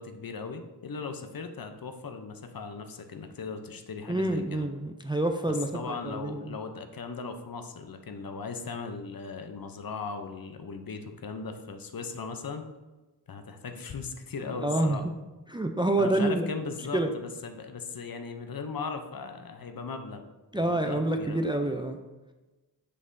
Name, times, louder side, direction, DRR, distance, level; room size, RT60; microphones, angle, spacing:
voice 1, 0.0-4.7 5.5-12.7 13.3-15.2 16.0-20.2 20.5-21.5, left 4 dB, 60° left, 6 dB, 0.6 m, -38 dB
voice 2, 4.1-6.4 14.6-15.1 15.5-16.5 16.9-17.1 20.5-22.0, right 1 dB, 10° right, 5 dB, 0.4 m, -27 dB
6.6 x 5.4 x 2.6 m, 1.1 s
wide cardioid pair, 65°, 41 cm